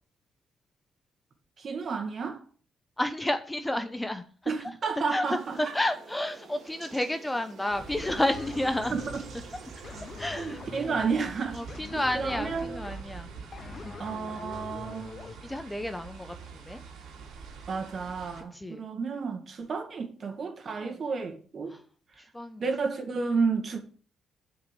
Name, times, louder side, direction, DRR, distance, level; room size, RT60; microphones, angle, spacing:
voice 1, 1.6-2.4 4.5-5.7 8.9-9.2 10.4-11.6 11.9-12.9 14.0-15.1 17.7-21.8 22.6-23.8, right 5 dB, 50° right, 2.2 m, -31 dB
voice 2, 3.0-4.2 5.1-8.9 10.2-11.1 11.5-13.3 13.8-13.9 15.4-16.8 17.8-17.9 18.5-18.8 20.7-21.0 22.3-22.6, left 1 dB, 10° left, 0.8 m, -31 dB
sound 1, 5.2-11.9, right 5 dB, 65° right, 2.1 m, -50 dB
sound 2, 7.7-18.4, right 5 dB, 85° right, 2.8 m, -45 dB
sound 3, 8.0-15.3, left 5 dB, 40° left, 0.7 m, -44 dB
8.0 x 5.2 x 6.8 m
cardioid pair, 90°, 0 cm